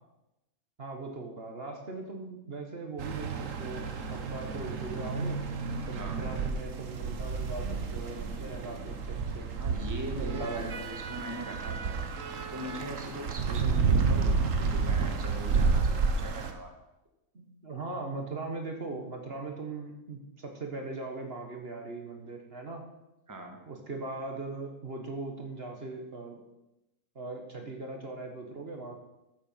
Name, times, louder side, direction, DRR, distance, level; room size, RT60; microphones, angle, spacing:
voice 1, 0.8-5.4 5.9-9.5 10.2-10.9 13.4-13.6 17.3-22.8 23.6-26.4 27.1-29.0, right 3 dB, 45° right, 2 dB, 1.5 m, -39 dB
sound 1, 3.0-16.5, right 4 dB, 65° right, 1.4 m, -30 dB
voice 2, 9.6-12.0 12.5-16.7 23.3-23.6, right 1 dB, 15° right, 3 dB, 1.4 m, -41 dB
13.0 x 7.5 x 5.7 m, 0.93 s
omnidirectional pair, 1.5 m